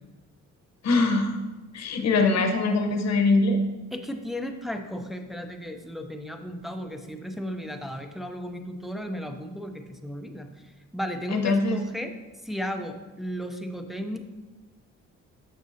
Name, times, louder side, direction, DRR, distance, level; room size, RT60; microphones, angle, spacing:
voice 1, 0.8-1.3 1.7-3.6 11.3-11.8, left 3 dB, 60° left, 5 dB, 0.9 m, -22 dB
voice 2, 3.9-10.5 10.9-12.1 12.4-14.2, equal, ahead, 4 dB, 0.6 m, -34 dB
7.5 x 6.0 x 2.7 m, 1.2 s
cardioid pair, 90°, 30 cm